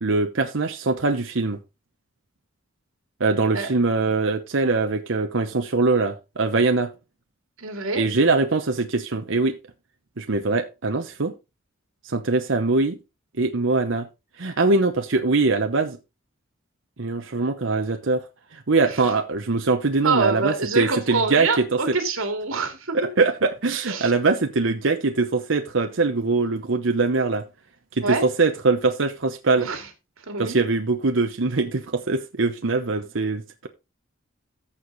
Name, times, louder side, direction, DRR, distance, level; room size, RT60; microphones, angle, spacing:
voice 1, 0.0-1.6 3.2-6.9 8.0-9.5 10.2-11.3 12.0-13.0 13.4-14.1 14.4-16.0 17.0-18.2 18.5-22.0 22.9-27.4 27.9-29.7 30.4-33.7, right 3 dB, 65° right, 0.9 m, -22 dB
voice 2, 7.6-8.0 18.9-19.0 20.0-23.1 23.8-24.1 28.0-28.3 29.6-29.9 30.3-30.6, right 4 dB, 85° right, 2.5 m, -25 dB
14.5 x 4.9 x 4.0 m
head